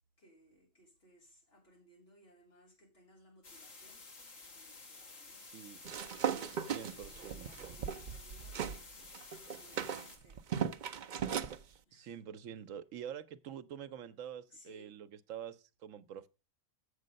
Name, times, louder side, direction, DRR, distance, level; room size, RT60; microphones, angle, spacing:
voice 1, 0.2-4.1 4.4-9.1 9.5-10.7 11.5-11.6 11.9-12.2 14.5-15.0, equal, 45° left, 3.8 m, -64 dB
sound 1, 3.4-10.2, left 3 dB, 75° left, 2.0 m, -53 dB
voice 2, 5.4-5.8 6.5-7.7 11.9-16.3, right 9 dB, 75° right, 1.1 m, -47 dB
sound 2, 5.8-8.8 9.1-11.6, right 8 dB, 60° right, 0.5 m, -37 dB
7.5 x 6.8 x 5.2 m
omnidirectional pair, 1.4 m